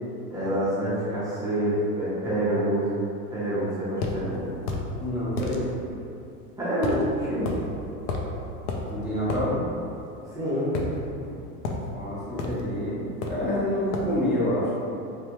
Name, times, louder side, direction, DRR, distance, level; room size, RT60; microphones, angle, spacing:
voice 1, 0.3-3.0 3.3-4.5 6.6-7.5 10.3-10.7, right 1 dB, 10° right, -9 dB, 0.6 m, -27 dB
sound 1, 4.0-4.2 4.7-4.9 5.4-5.6 6.8-7.0 7.4-7.6 8.1-8.3 8.7-8.8 9.3-9.4 10.7-11.3 11.6-11.8 12.4-12.6 13.2-13.5 13.9-14.1, left 3 dB, 75° left, 0.6 m, -30 dB
voice 2, 5.0-5.7 8.9-9.6 11.2-11.3 11.9-14.7, left 1 dB, 20° left, -8 dB, 0.9 m, -27 dB
3.3 x 2.3 x 2.9 m, 2.6 s
supercardioid pair, 125°, 48 cm